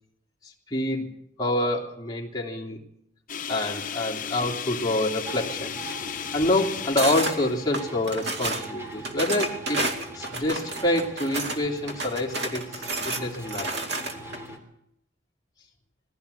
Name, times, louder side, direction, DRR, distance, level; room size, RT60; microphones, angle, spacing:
voice 1, 0.4-2.8 3.5-5.8 6.3-9.8 10.1-13.8, left 1 dB, 20° left, -1 dB, 2.9 m, -27 dB
sound 1, 3.3-8.5, left 8 dB, 45° left, 0.9 m, -35 dB
sound 2, 5.2-14.6, right 2 dB, 15° right, 3.2 m, -41 dB
sound 3, 7.0-7.4 7.7-8.7 9.0-11.6 11.9-14.4, right 2 dB, 60° right, 2.5 m, -30 dB
21.0 x 16.0 x 8.3 m, 0.76 s
head